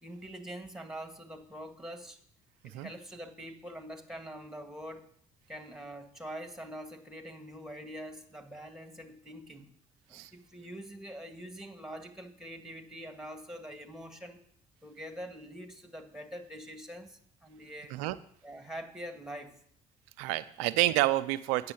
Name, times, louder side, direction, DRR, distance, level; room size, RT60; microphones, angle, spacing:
voice 1, 0.0-2.2 2.6-5.1 5.5-9.7 10.1-14.4 14.8-17.9 18.4-19.6, equal, 5° right, 6 dB, 2.0 m, -44 dB
voice 2, 20.2-21.7, right 17 dB, 85° right, 14 dB, 0.6 m, -29 dB
8.3 x 6.8 x 8.5 m, 0.65 s
hypercardioid pair, 60°, 18 cm